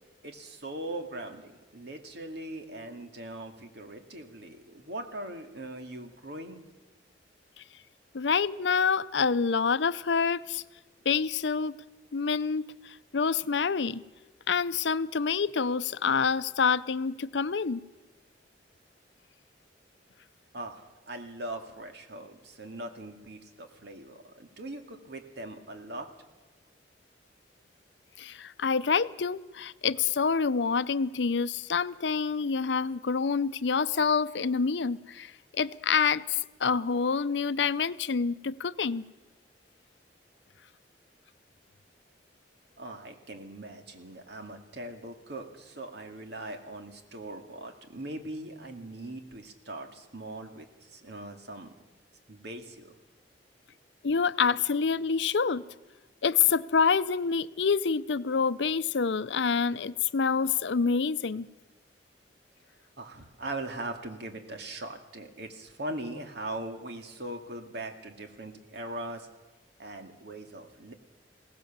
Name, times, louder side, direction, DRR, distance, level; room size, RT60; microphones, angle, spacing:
voice 1, 0.2-6.6 20.5-26.1 42.8-50.7 50.9-51.7 52.3-52.9 63.0-69.3 69.8-70.9, right 1 dB, 65° right, 5 dB, 2.3 m, -40 dB
voice 2, 8.1-10.6 11.1-11.8 12.1-14.0 14.5-17.8 28.2-39.0 54.0-55.6 56.2-61.5, left 5 dB, 70° left, 15 dB, 0.6 m, -27 dB
21.5 x 17.5 x 7.4 m, 1.1 s
head